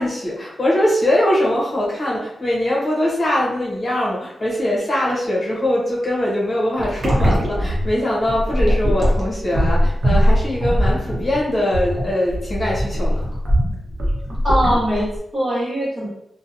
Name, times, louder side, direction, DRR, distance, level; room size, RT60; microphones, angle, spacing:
voice 1, 0.0-13.2, left 1 dB, 35° left, -5 dB, 0.8 m, -21 dB
sound 1, 6.8-15.2, equal, 55° right, 0.8 m, -20 dB
voice 2, 14.4-16.1, equal, 40° right, -7 dB, 1.1 m, -21 dB
2.7 x 2.1 x 2.5 m, 0.77 s
wide cardioid pair, 115°, 0 cm